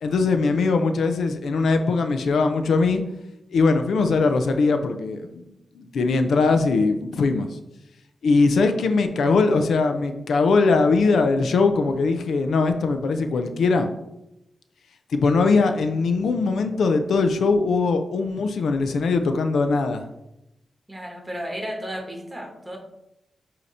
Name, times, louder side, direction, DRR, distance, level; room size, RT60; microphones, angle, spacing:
voice 1, 0.0-3.0 3.5-5.5 5.8-7.5 8.2-13.9 15.1-20.0, left 4 dB, 85° left, 7 dB, 0.5 m, -21 dB
voice 2, 20.9-22.8, equal, 10° right, 1 dB, 1.5 m, -33 dB
8.2 x 2.9 x 4.1 m, 0.87 s
wide cardioid pair, 95°, 0 cm